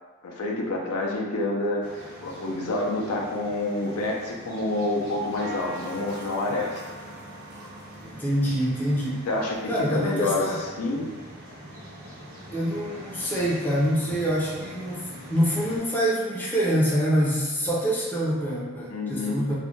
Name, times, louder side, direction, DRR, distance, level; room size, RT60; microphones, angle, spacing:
voice 1, 0.2-6.8 9.3-10.5 10.8-11.1 16.7-16.8 18.9-19.4, left 2 dB, 85° left, -1 dB, 0.5 m, -28 dB
sound 1, 1.8-15.8, equal, 35° right, 0.6 m, -43 dB
voice 2, 8.0-9.3 9.7-10.6 12.5-19.5, equal, 10° left, -6 dB, 0.4 m, -25 dB
2.5 x 2.1 x 3.0 m, 1.3 s
head